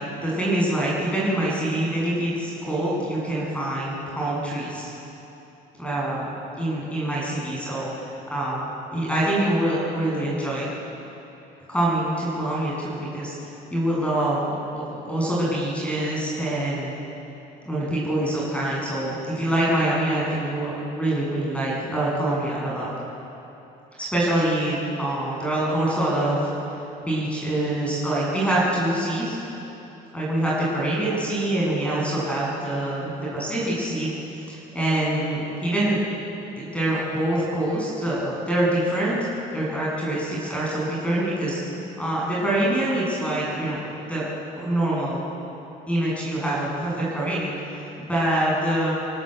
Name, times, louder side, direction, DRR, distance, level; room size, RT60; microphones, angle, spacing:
voice 1, 0.2-4.9 5.8-6.2 6.6-10.7 11.7-13.3 13.7-14.4 14.7-16.9 17.6-22.9 24.0-26.5 27.0-29.4 30.1-34.1 34.5-36.0 36.6-41.6 42.0-43.8 44.1-44.2 44.6-45.2 45.9-48.9, right 1 dB, 5° left, -6 dB, 8.0 m, -25 dB
27.0 x 17.0 x 8.2 m, 3.0 s
cardioid pair, 110°, 17 cm